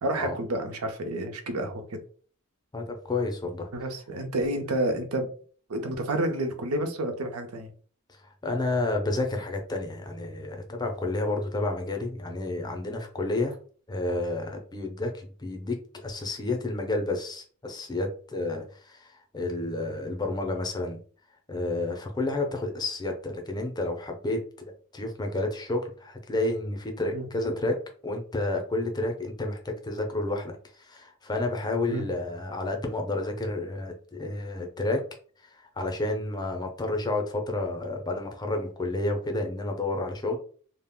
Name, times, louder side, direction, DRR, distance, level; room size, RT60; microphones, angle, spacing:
voice 1, 0.0-2.0 3.7-5.3 5.7-7.7 27.1-27.2 31.9-32.0, right 1 dB, 85° right, 6 dB, 0.6 m, -29 dB
voice 2, 2.7-3.7 8.2-13.6 13.9-21.0 21.5-24.4 24.9-27.8 28.0-35.0 35.4-40.4, left 2 dB, 20° left, 3 dB, 0.5 m, -30 dB
2.3 x 2.1 x 3.5 m, 0.43 s
head